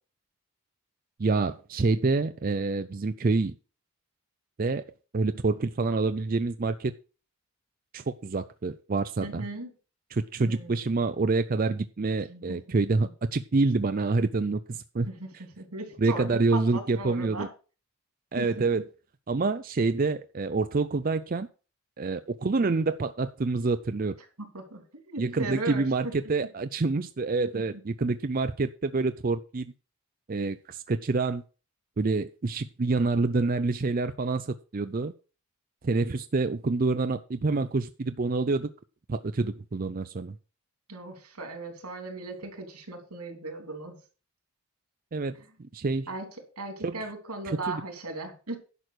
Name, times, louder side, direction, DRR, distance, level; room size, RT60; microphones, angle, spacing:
voice 1, 1.2-3.5 4.6-4.8 5.1-6.9 7.9-9.4 10.1-15.1 16.0-17.5 18.3-18.8 19.3-21.5 22.0-24.2 25.2-29.7 30.3-31.4 32.0-35.1 35.8-38.7 39.1-40.4 45.1-45.3 45.7-46.1 46.8-47.0 47.5-47.8, right 3 dB, 40° right, 0.4 m, -27 dB
voice 2, 9.2-9.7 10.4-11.0 12.3-12.6 15.1-17.5 18.3-18.6 24.4-24.8 25.1-25.8 27.5-27.6 40.9-44.0 46.1-46.3 46.6-48.6, right 2 dB, 85° right, 3.3 m, -37 dB
11.0 x 6.0 x 6.4 m
head